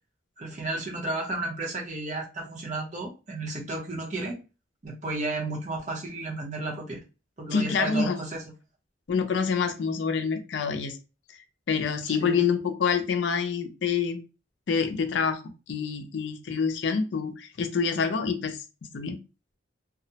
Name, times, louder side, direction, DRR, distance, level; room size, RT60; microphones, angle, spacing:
voice 1, 0.4-4.4 4.8-7.0 7.4-8.4 12.1-12.3, right 2 dB, 40° right, -1 dB, 0.7 m, -33 dB
voice 2, 7.5-8.2 9.1-11.0 11.7-14.2 14.7-15.4 15.7-18.6 18.9-19.2, left 5 dB, 75° left, 7 dB, 0.4 m, -27 dB
2.2 x 2.0 x 2.7 m, 0.31 s
head